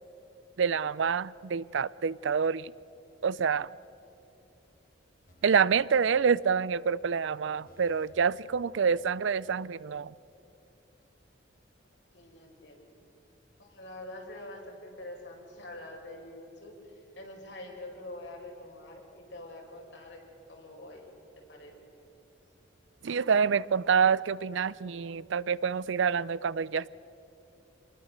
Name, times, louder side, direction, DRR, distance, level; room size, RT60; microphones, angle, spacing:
voice 1, 0.6-2.7 3.2-3.7 5.4-10.1 23.0-26.9, right 6 dB, 85° right, 21 dB, 0.5 m, -27 dB
sound 1, 5.3-6.8 7.1-7.2 7.7-9.6 9.9-10.0, equal, 45° left, 2.0 m, -63 dB
voice 2, 12.1-12.8 13.6-20.2 20.5-21.1 21.4-21.9, left 1 dB, 70° left, 1 dB, 4.7 m, -45 dB
25.5 x 20.5 x 6.6 m, 3.0 s
head